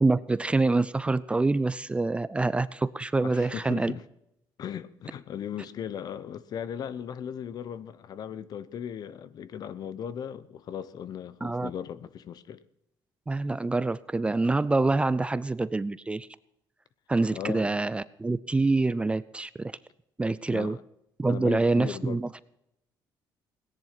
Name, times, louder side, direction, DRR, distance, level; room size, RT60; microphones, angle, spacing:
voice 1, 0.0-3.9 11.4-11.7 13.3-16.3 17.1-19.8 20.2-20.8 21.2-22.4, right 3 dB, 15° right, 0.5 m, -26 dB
voice 2, 3.2-4.0 4.6-12.6 17.3-17.7 20.5-20.8 21.3-22.2, left 8 dB, 55° left, 1.0 m, -37 dB
17.5 x 10.5 x 5.8 m
cardioid pair, 120°, 8 cm